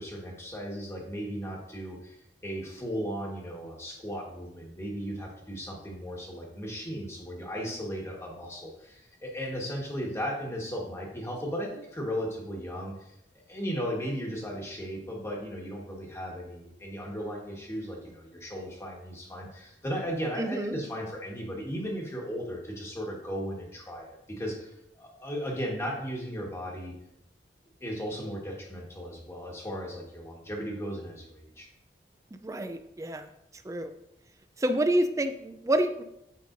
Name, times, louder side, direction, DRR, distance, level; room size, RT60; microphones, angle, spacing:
voice 1, 0.0-2.2 2.4-13.1 13.5-26.9 27.8-31.7, equal, 15° left, -1 dB, 1.3 m, -36 dB
voice 2, 20.4-20.7 32.3-33.3 33.6-33.9 34.6-36.0, right 1 dB, 15° right, 9 dB, 0.4 m, -28 dB
9.2 x 5.3 x 2.6 m, 0.81 s
head